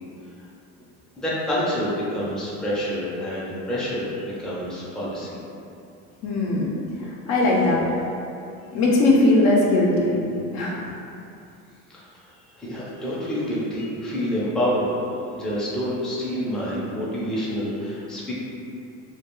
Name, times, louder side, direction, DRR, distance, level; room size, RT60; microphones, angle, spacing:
voice 1, 1.2-5.4 11.9-14.9 15.3-18.3, equal, ahead, -8 dB, 0.5 m, -28 dB
voice 2, 6.2-6.7 7.1-8.1 8.7-10.2 10.5-10.8, left 2 dB, 60° left, -3 dB, 0.6 m, -20 dB
2.2 x 2.2 x 2.9 m, 2.6 s
supercardioid pair, 105°, 31 cm